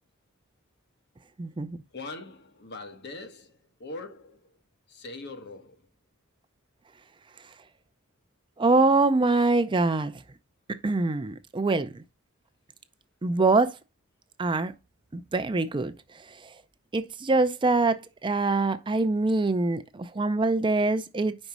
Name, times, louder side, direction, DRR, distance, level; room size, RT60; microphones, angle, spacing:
voice 1, 1.4-1.8 8.6-10.2 10.8-12.0 13.2-13.8 14.4-14.7 15.1-15.9 16.3-16.5 16.9-21.4, right 3 dB, 25° right, 0.5 m, -24 dB
voice 2, 1.9-4.6 4.9-5.9, left 3 dB, 55° left, 1.2 m, -42 dB
5.4 x 4.0 x 6.0 m
head